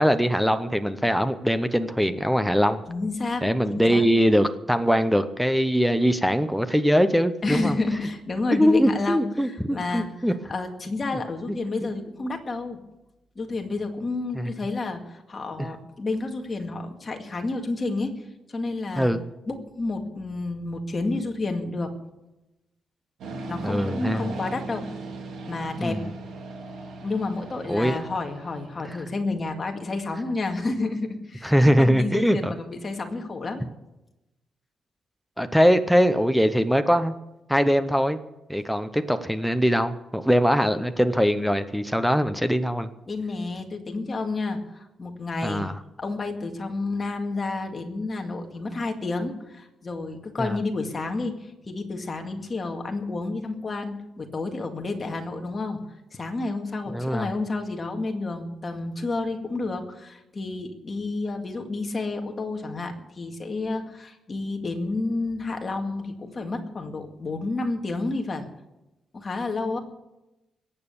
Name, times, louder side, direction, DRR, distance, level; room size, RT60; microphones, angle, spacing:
voice 1, 0.0-2.8 3.4-7.7 8.5-10.3 11.8-11.9 14.4-14.5 19.0-19.2 23.6-24.3 25.8-26.1 27.7-28.0 31.4-32.5 35.4-37.1 37.5-38.2 38.5-42.9 45.4-45.7 50.4-50.6 56.9-57.3, equal, ahead, 11 dB, 0.7 m, -22 dB
voice 2, 2.9-3.5 3.7-4.1 7.4-10.1 10.5-12.8 13.4-18.2 18.5-19.1 19.5-21.9 23.5-24.9 25.5-26.0 27.0-33.6 43.1-45.7 46.0-55.8 56.1-68.5 69.1-69.8, left 3 dB, 30° left, 3 dB, 2.0 m, -30 dB
sound 1, 23.2-29.0, right 2 dB, 80° right, 2.8 m, -38 dB
21.5 x 8.9 x 7.0 m, 0.97 s
cardioid pair, 135°, 0 cm